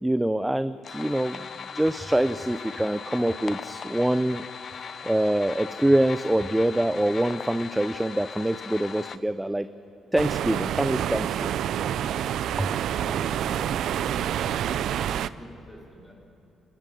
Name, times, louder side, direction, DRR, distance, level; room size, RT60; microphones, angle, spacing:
voice 1, 0.0-1.4 1.7-4.5 5.0-9.7 10.1-11.5 12.6-12.7, right 1 dB, 5° right, 12 dB, 0.6 m, -25 dB
sound 1, 0.8-9.2, left 6 dB, 50° left, 0.7 m, -39 dB
sound 2, 10.2-15.3, right 10 dB, 75° right, 0.6 m, -27 dB
voice 2, 13.0-16.1, equal, 10° left, 1 dB, 4.4 m, -43 dB
28.0 x 12.5 x 9.3 m, 3.0 s
cardioid pair, 90°, 0 cm